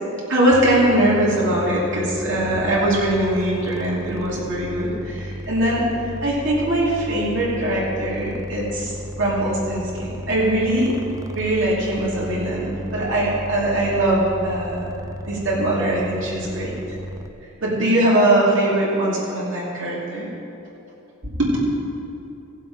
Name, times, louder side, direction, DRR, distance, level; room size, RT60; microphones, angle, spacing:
voice 1, 0.3-5.8 6.2-11.0 11.3-14.9 15.3-16.8 17.6-20.3 21.2-21.6, right 1 dB, 60° right, -6 dB, 2.9 m, -21 dB
sound 1, 0.5-17.3, equal, 15° right, 0.4 m, -35 dB
17.0 x 7.6 x 5.0 m, 2.8 s
head